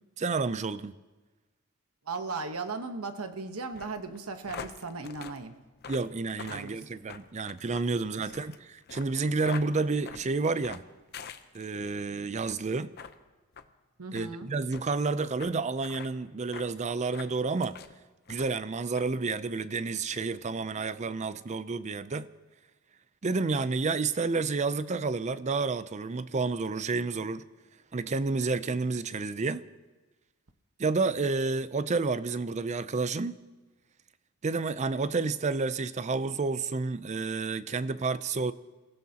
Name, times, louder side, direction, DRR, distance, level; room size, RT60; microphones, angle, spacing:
voice 1, 0.2-0.9 5.9-10.8 11.5-12.9 14.1-17.8 18.3-22.3 23.2-27.4 27.9-29.6 30.8-33.4 34.4-38.5, right 4 dB, 30° right, 0.5 m, -30 dB
voice 2, 2.1-5.6 6.5-7.0 7.9-8.2 14.0-14.5, right 3 dB, 85° right, 1.2 m, -37 dB
sound 1, 3.7-12.0 12.3-12.6 13.0-13.1 13.5-13.7 14.1-14.3 14.7-14.8 15.4-15.5 15.8-16.1 16.5-16.7 17.1-17.9 18.3-18.6 18.9-19.1, left 6 dB, 50° left, 0.7 m, -44 dB
29.0 x 16.5 x 2.9 m
head